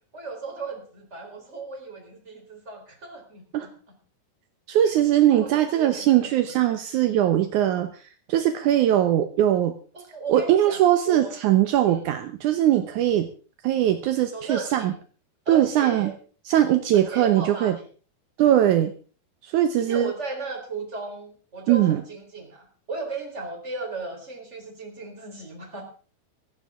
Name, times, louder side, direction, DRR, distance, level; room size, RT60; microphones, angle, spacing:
voice 1, 0.1-3.7 5.3-6.5 9.9-10.8 11.1-11.4 11.9-12.0 14.3-14.9 15.5-16.1 16.9-17.8 19.8-25.8, right 3 dB, 15° right, 1 dB, 3.9 m, -36 dB
voice 2, 4.7-8.0 8.3-9.8 10.3-13.3 13.6-14.9 15.5-16.1 16.5-17.8 18.4-18.9 19.4-20.1 21.7-22.0, right 11 dB, 75° right, 8 dB, 1.8 m, -21 dB
16.5 x 15.0 x 3.7 m, 0.39 s
omnidirectional pair, 4.8 m